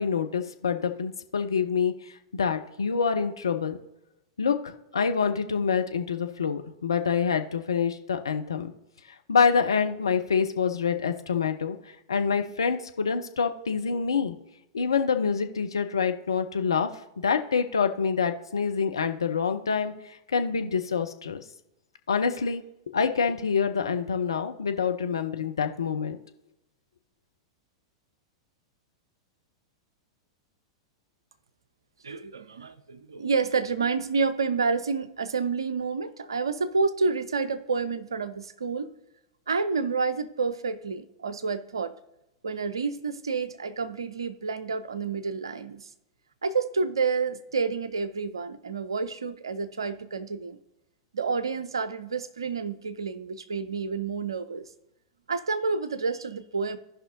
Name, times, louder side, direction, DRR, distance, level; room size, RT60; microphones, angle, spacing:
voice 1, 0.0-3.8 4.4-8.7 9.3-11.8 12.1-14.3 14.7-16.9 17.2-21.4 22.1-22.6 22.9-26.2, left 6 dB, 75° left, 7 dB, 0.7 m, -26 dB
voice 2, 32.0-38.9 39.5-41.9 42.4-45.9 46.4-50.6 51.1-54.7 55.3-56.8, right 4 dB, 75° right, 13 dB, 0.6 m, -29 dB
16.0 x 5.6 x 2.7 m, 0.92 s
figure-of-eight pair, 95°, 2 cm